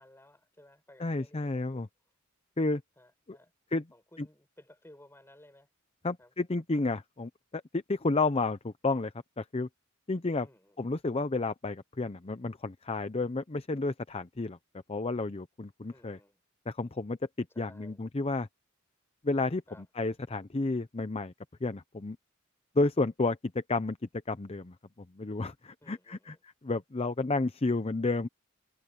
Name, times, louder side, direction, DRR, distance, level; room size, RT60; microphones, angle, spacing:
voice 1, 0.0-1.9 3.0-3.5 3.9-5.7 6.2-6.3 10.4-10.8 15.9-16.4 17.5-18.1 19.7-19.9 25.8-26.4, left 1 dB, 10° left, 7.3 m, -57 dB
voice 2, 1.0-1.9 2.6-2.8 3.7-3.8 6.0-9.1 9.4-9.7 10.1-10.5 10.8-14.6 14.9-16.2 16.7-17.2 17.6-18.5 19.2-19.6 20.0-21.3 21.6-22.2 22.8-24.0 24.3-24.7 25.2-26.3 26.6-28.3, left 3 dB, 30° left, 0.7 m, -31 dB
head